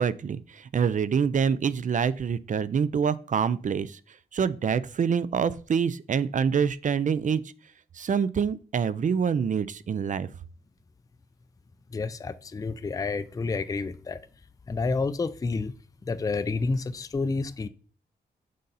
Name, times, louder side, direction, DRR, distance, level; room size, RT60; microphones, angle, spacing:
voice 1, 0.0-4.0 4.3-7.4 7.9-10.3, right 6 dB, 45° right, 0.4 m, -26 dB
voice 2, 11.9-14.2 14.7-15.7 16.0-17.7, left 4 dB, 20° left, 0.3 m, -29 dB
6.5 x 5.4 x 4.0 m
wide cardioid pair, 140°, 18 cm